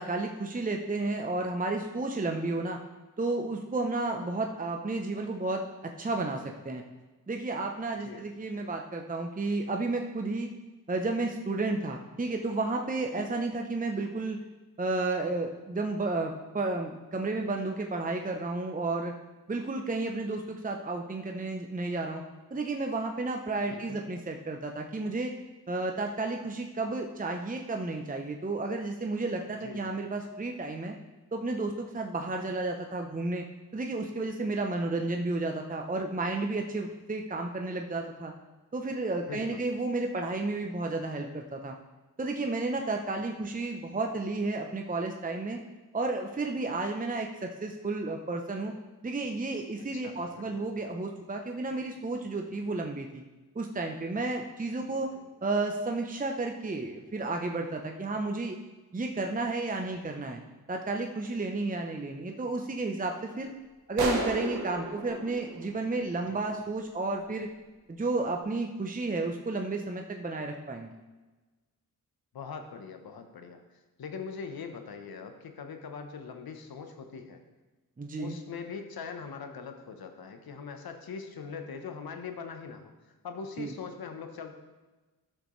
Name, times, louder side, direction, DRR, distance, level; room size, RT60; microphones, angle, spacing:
voice 1, 0.0-2.8 3.2-6.8 7.3-10.5 10.9-14.4 14.8-19.1 19.5-22.2 22.5-25.3 25.7-30.9 31.3-33.4 33.7-38.3 38.7-41.8 42.2-45.6 45.9-48.7 49.0-53.2 53.5-55.1 55.4-58.6 58.9-60.4 60.7-63.5 63.9-67.5 67.9-70.9 78.0-78.4 83.6-83.7, right 2 dB, 20° right, 2 dB, 0.8 m, -32 dB
voice 2, 7.9-8.3 13.1-13.3 23.7-24.0 29.6-30.0 39.3-39.6 49.9-50.6 54.8-55.3 66.3-66.4 72.3-77.4 78.2-84.5, left 5 dB, 75° left, 6 dB, 1.0 m, -42 dB
sound 1, 64.0-66.6, right 2 dB, 75° right, 1.3 m, -34 dB
9.9 x 6.4 x 3.2 m, 1.2 s
cardioid pair, 50°, 37 cm